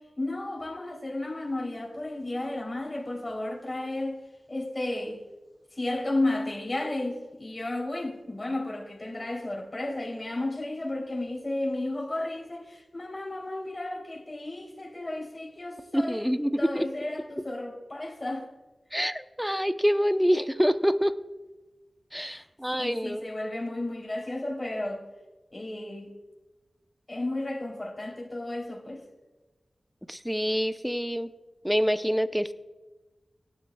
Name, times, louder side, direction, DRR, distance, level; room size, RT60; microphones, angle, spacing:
voice 1, 0.2-4.2 4.5-5.2 5.8-16.3 16.6-18.5 22.2-22.4 22.7-25.0 25.5-26.1 27.1-29.0, left 2 dB, 35° left, 3.3 m, -33 dB
voice 2, 15.9-16.8 18.9-21.1 22.1-23.3 30.1-31.3 31.6-32.5, equal, ahead, 0.7 m, -26 dB
17.0 x 12.0 x 2.3 m
wide cardioid pair, 55°, 0 cm